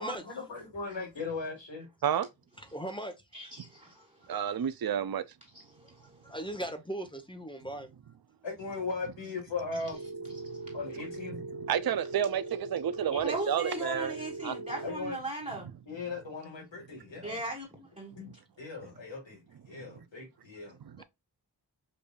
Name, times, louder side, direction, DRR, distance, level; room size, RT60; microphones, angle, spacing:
voice 1, 0.0-1.9 8.4-10.0 10.7-11.4 14.8-15.2 15.9-17.4 18.2-19.4 19.7-20.8, left 4 dB, 90° left, 1.7 m, -38 dB
voice 2, 2.6-3.1 4.0-4.1 6.0-7.9 21.0-21.1, right 1 dB, 10° left, 0.9 m, -39 dB
voice 3, 3.3-4.3 5.5-6.3 10.4-10.7 13.1-15.7 17.2-17.7 18.0-18.1, right 1 dB, 15° right, 1.5 m, -39 dB
voice 4, 4.3-5.2 11.3-14.1 14.4-14.6 18.2-18.3 20.8-21.0, right 9 dB, 55° right, 0.5 m, -30 dB
Telephone, 9.9-14.9, right 2 dB, 80° right, 0.9 m, -41 dB
5.2 x 2.6 x 2.3 m
wide cardioid pair, 45°, 43 cm